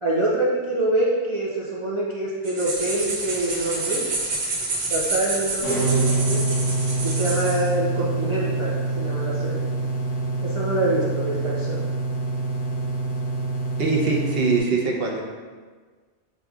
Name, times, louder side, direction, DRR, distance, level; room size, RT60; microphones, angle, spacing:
voice 1, 0.0-4.0 4.8-6.4 7.0-9.6 10.4-11.8, right 1 dB, 40° right, -7 dB, 0.5 m, -25 dB
sound 1, 2.4-7.7, right 3 dB, 80° right, 1.3 m, -28 dB
sound 2, 5.6-14.6, right 3 dB, 55° left, 0.7 m, -26 dB
voice 2, 13.8-15.2, right 4 dB, 65° right, -1 dB, 0.9 m, -22 dB
7.1 x 2.6 x 2.3 m, 1.5 s
omnidirectional pair, 1.2 m